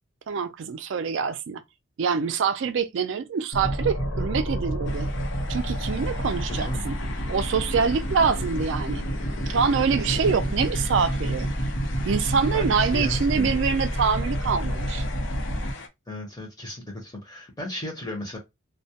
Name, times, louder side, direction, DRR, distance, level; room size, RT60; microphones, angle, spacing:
voice 1, 0.3-1.6 2.0-5.1 5.5-7.0 7.3-9.1 9.5-11.5 12.0-15.0, right 6 dB, 60° right, 0.3 m, -25 dB
sound 1, 3.5-15.7, equal, 85° left, 0.8 m, -29 dB
sound 2, 4.9-15.9, left 4 dB, 60° left, 0.4 m, -42 dB
voice 2, 6.5-6.8 10.1-10.4 12.5-13.5 16.1-18.4, left 1 dB, 20° left, 0.6 m, -35 dB
2.2 x 2.0 x 2.7 m
head